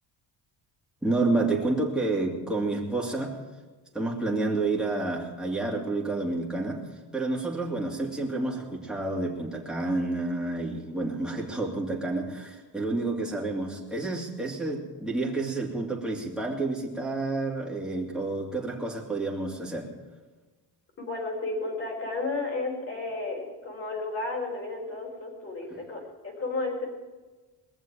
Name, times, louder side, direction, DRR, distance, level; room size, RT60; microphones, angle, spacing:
voice 1, 1.0-3.4 3.9-6.8 7.1-19.9, right 2 dB, ahead, -3 dB, 2.7 m, -29 dB
voice 2, 21.0-26.9, left 3 dB, 30° left, 0 dB, 4.6 m, -33 dB
21.5 x 7.2 x 8.9 m, 1.3 s
cardioid pair, 175°, 42 cm